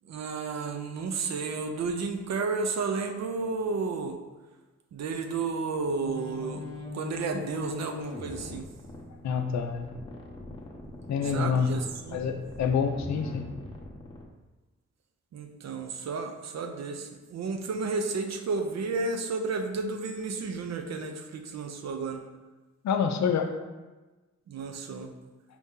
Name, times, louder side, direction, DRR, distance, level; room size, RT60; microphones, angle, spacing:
voice 1, 0.0-4.2 4.9-6.6 6.9-8.7 11.2-12.2 15.3-22.2 24.5-25.1, right 4 dB, 65° right, 6 dB, 0.5 m, -32 dB
sound 1, 6.0-14.2, left 2 dB, 15° left, 0.6 m, -41 dB
voice 2, 9.2-9.9 11.1-11.7 12.1-13.5 22.8-23.5, left 6 dB, 70° left, 7 dB, 0.5 m, -27 dB
4.5 x 2.7 x 3.6 m, 1.2 s
wide cardioid pair, 115°, 29 cm